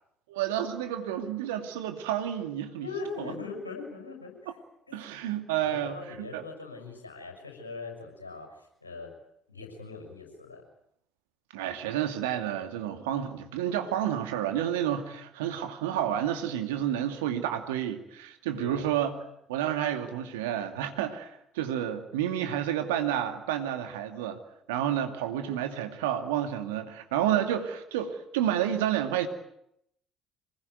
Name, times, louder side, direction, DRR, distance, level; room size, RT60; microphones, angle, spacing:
voice 1, 0.3-2.9 3.2-3.3 4.9-6.4 11.5-19.1 19.5-24.4 24.7-29.3, right 10 dB, 75° right, 7 dB, 2.5 m, -30 dB
voice 2, 2.8-4.6 4.9-5.0 5.6-9.1 9.5-10.6 18.5-18.9, left 4 dB, 90° left, 2 dB, 6.4 m, -41 dB
26.5 x 20.5 x 9.4 m, 0.76 s
figure-of-eight pair, 50°, 0 cm